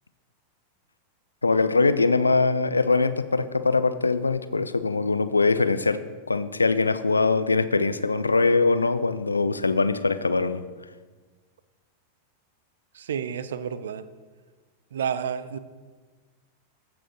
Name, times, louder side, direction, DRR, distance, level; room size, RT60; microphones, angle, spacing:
voice 1, 1.4-6.0 6.3-10.6, left 3 dB, 80° left, 13 dB, 0.4 m, -22 dB
voice 2, 13.0-14.0 14.9-15.6, right 8 dB, 65° right, 14 dB, 0.4 m, -30 dB
15.5 x 6.2 x 3.1 m, 1.4 s
figure-of-eight pair, 90°, 0 cm